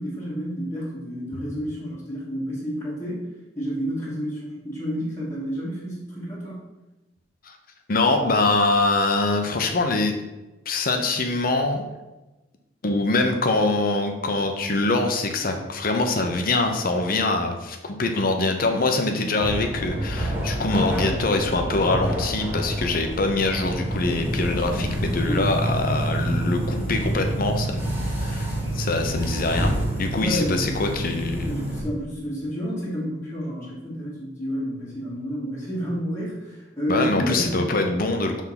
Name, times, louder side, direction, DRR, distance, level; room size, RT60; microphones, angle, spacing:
voice 1, 0.0-3.3 3.5-6.6 25.2-25.6 30.2-30.7 31.5-37.5, equal, 15° left, -10 dB, 1.6 m, -30 dB
voice 2, 7.9-10.1 10.7-11.8 12.8-27.9 28.2-28.5 28.7-31.5 36.9-38.4, left 2 dB, 50° left, 5 dB, 0.7 m, -24 dB
sound 1, 19.4-31.8, right 1 dB, 10° right, 1.9 m, -27 dB
5.8 x 3.6 x 5.8 m, 1.1 s
head